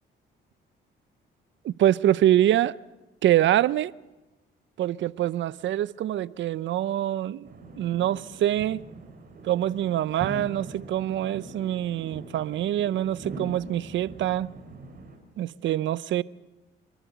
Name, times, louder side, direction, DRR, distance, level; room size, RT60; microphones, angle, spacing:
voice 1, 1.6-2.7 3.2-3.9 4.8-7.5 7.8-8.9 9.4-14.5 15.4-16.2, right 12 dB, 70° right, 0.6 m, -25 dB
sound 1, 7.4-15.2, right 3 dB, 50° right, 5.7 m, -42 dB
28.5 x 13.5 x 8.1 m
cardioid pair, 90°, 20 cm